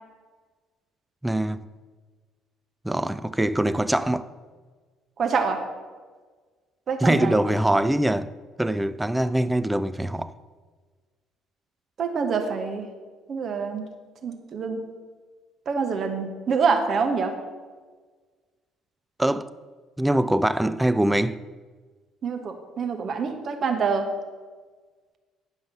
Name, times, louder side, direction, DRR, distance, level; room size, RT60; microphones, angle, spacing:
voice 1, 1.2-1.6 2.8-4.3 7.0-8.3 8.6-10.3 19.2-19.5 20.0-21.4, right 1 dB, 10° right, 0.4 m, -23 dB
voice 2, 5.2-5.6 6.9-7.4 12.0-12.9 13.3-13.8 14.2-14.9 15.7-17.4 22.2-24.1, right 5 dB, 45° right, 1.0 m, -26 dB
10.0 x 5.5 x 5.6 m
figure-of-eight pair, 50°, 0 cm